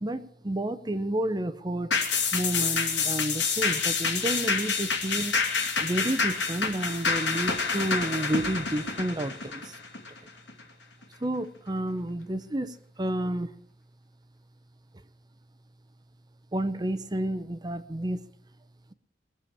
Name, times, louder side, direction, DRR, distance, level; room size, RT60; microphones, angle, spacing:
voice 1, 0.0-1.9 2.3-5.4 5.8-9.7 11.2-13.5 16.5-18.2, right 1 dB, 20° right, 11 dB, 0.8 m, -30 dB
sound 1, 1.9-10.6 11.0-11.1, left 5 dB, 75° left, 2.6 m, -28 dB
20.0 x 7.1 x 8.7 m, 0.65 s
head